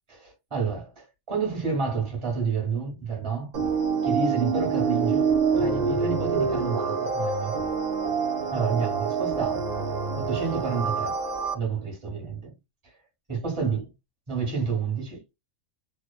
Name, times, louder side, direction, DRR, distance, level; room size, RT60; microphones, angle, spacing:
voice 1, 0.1-3.5 4.0-7.5 8.5-9.7 10.1-11.2 11.5-12.5 12.8-12.9 13.3-13.9 14.3-15.2, right 5 dB, 25° right, 1.3 m, -29 dB
sound 1, 3.5-11.5, right 5 dB, 50° right, 0.5 m, -26 dB
2.9 x 2.2 x 2.2 m
omnidirectional pair, 1.3 m